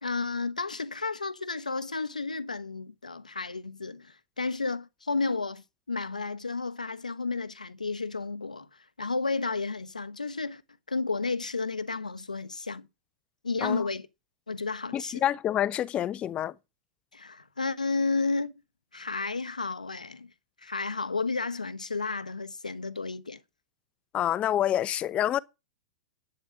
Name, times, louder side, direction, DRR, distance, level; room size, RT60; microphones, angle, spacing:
voice 1, 0.0-8.7 9.0-10.6 10.9-12.9 13.4-14.1 14.5-15.2 17.1-18.5 18.9-20.3 20.6-23.4, left 3 dB, 90° left, 1.2 m, -32 dB
voice 2, 14.9-16.5 24.1-25.4, left 11 dB, 30° left, 0.9 m, -27 dB
11.5 x 9.1 x 5.8 m
figure-of-eight pair, 100°, 4 cm